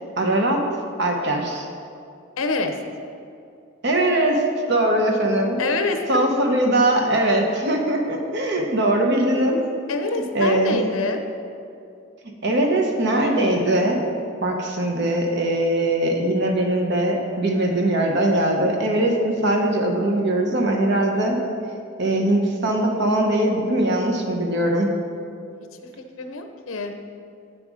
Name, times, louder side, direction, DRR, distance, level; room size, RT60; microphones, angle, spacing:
voice 1, 0.2-0.6 1.0-1.7 3.8-5.6 6.1-9.6 10.1-10.8 12.4-14.0 14.4-21.4 22.0-24.9, right 1 dB, 50° right, 2 dB, 0.8 m, -21 dB
voice 2, 2.4-2.7 5.6-6.3 9.9-11.2 26.2-26.9, left 3 dB, 70° left, 5 dB, 0.7 m, -25 dB
8.5 x 5.3 x 4.8 m, 2.5 s
head